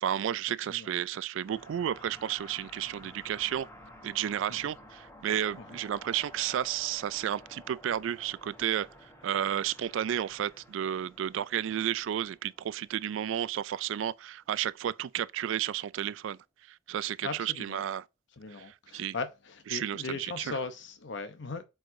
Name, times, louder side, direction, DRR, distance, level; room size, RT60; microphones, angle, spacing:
voice 1, 0.0-3.7 4.0-8.9 9.2-16.4 16.9-18.0 18.9-19.1 19.7-20.6, right 10 dB, 70° right, 0.3 m, -32 dB
voice 2, 0.6-0.9 4.5-4.7 5.6-5.8 17.2-17.8 18.4-21.6, left 4 dB, 65° left, 0.8 m, -39 dB
sound 1, 1.5-14.1, left 1 dB, 15° left, 1.4 m, -53 dB
7.9 x 4.8 x 2.6 m
head